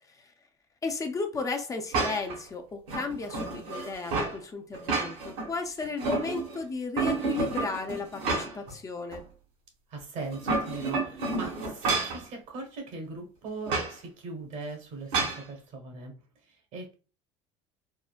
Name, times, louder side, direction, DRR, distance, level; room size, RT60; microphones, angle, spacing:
voice 1, 0.8-9.2, left 4 dB, 25° left, 5 dB, 0.5 m, -34 dB
sound 1, 1.9-2.4 2.9-4.4 4.7-5.5 5.8-6.6 7.0-8.7 9.1-9.2 10.2-12.2 13.7-13.9 15.1-15.4, right 3 dB, 80° right, 1.3 m, -30 dB
voice 2, 9.9-16.1 16.4-16.9, right 3 dB, 65° right, 2 dB, 1.2 m, -40 dB
3.6 x 2.1 x 2.4 m, 0.34 s
supercardioid pair, 105°, 13 cm